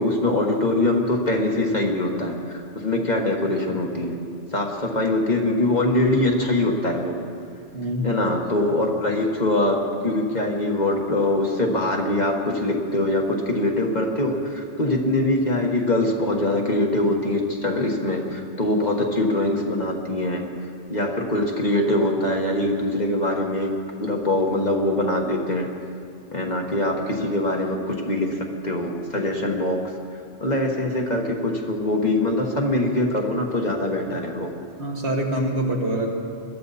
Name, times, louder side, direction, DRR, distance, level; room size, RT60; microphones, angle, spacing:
voice 1, 0.0-4.2 4.5-7.1 8.0-9.8 10.0-20.4 20.9-23.7 24.0-25.7 26.3-29.8 30.4-34.5, left 1 dB, 35° left, 1 dB, 1.5 m, -23 dB
voice 2, 7.7-8.2 34.8-36.1, right 1 dB, 60° right, 0 dB, 2.0 m, -25 dB
21.5 x 13.0 x 4.2 m, 2.3 s
omnidirectional pair, 1.3 m